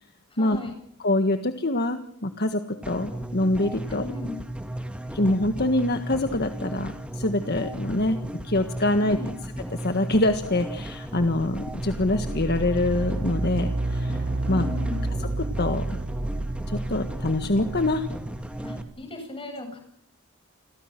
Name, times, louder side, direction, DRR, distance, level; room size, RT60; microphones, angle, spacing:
voice 1, 0.3-0.7 3.8-4.4 9.0-9.4 14.5-15.1 18.6-19.8, left 2 dB, 25° left, 5 dB, 7.8 m, -36 dB
voice 2, 1.0-2.6 2.9-4.0 5.1-8.2 8.4-9.2 9.8-14.2 14.5-14.6 15.6-16.0 16.7-18.1, left 1 dB, 50° left, 7 dB, 1.6 m, -25 dB
sound 1, 2.8-18.8, right 1 dB, 5° right, 2.3 m, -35 dB
sound 2, 11.0-18.7, right 2 dB, 50° right, 0.9 m, -31 dB
29.5 x 22.5 x 6.1 m, 0.68 s
head